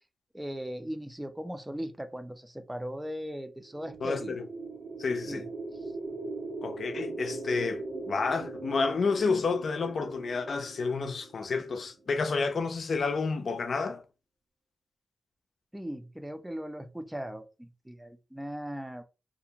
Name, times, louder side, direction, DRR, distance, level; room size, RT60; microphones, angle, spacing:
voice 1, 0.3-4.4 5.3-5.5 15.7-19.0, equal, 10° right, 0.5 m, -38 dB
sound 1, 3.6-11.8, right 2 dB, 75° right, 0.9 m, -40 dB
voice 2, 4.0-4.5 5.0-5.5 6.6-14.0, left 4 dB, 65° left, 0.5 m, -30 dB
2.5 x 2.1 x 2.8 m
cardioid pair, 60°, 0 cm